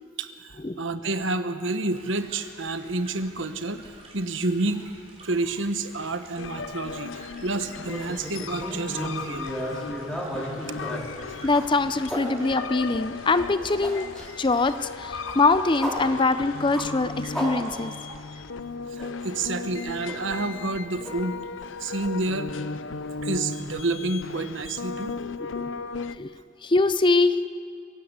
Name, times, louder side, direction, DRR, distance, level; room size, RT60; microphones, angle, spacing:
voice 1, 0.2-4.8 5.2-9.5 11.3-11.4 18.9-21.4 21.8-22.5 23.2-25.2, right 2 dB, 70° right, 9 dB, 1.3 m, -29 dB
sound 1, 1.9-18.2, right 2 dB, 30° right, 5.0 m, -50 dB
sound 2, 6.4-26.2, left 4 dB, 70° left, 0.6 m, -36 dB
sound 3, 7.9-12.2 12.7-18.1 18.4-18.5 19.0-19.2 20.0-20.8 21.0-21.1 21.6-21.7 23.0-23.1, equal, ahead, 4.5 m, -35 dB
voice 2, 11.4-14.1 14.4-17.9 25.6-25.7 26.2-26.3 26.6-27.4, left 3 dB, 25° left, 12 dB, 0.6 m, -23 dB
25.0 x 16.5 x 8.1 m, 2.3 s
head